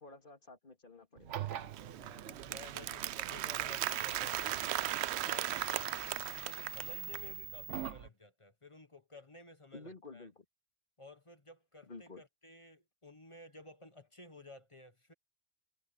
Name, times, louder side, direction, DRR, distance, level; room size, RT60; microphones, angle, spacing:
voice 1, 0.0-1.4 9.7-10.4 11.9-12.2, left 3 dB, 45° left, 2.5 m, -51 dB
sound 1, 1.2-8.1, right 10 dB, 90° right, 1.2 m, -45 dB
Applause, 1.5-7.3, right 13 dB, 70° right, 0.8 m, -37 dB
voice 2, 1.8-10.3 11.0-15.1, left 2 dB, 25° left, 1.2 m, -55 dB
omnidirectional pair, 1.2 m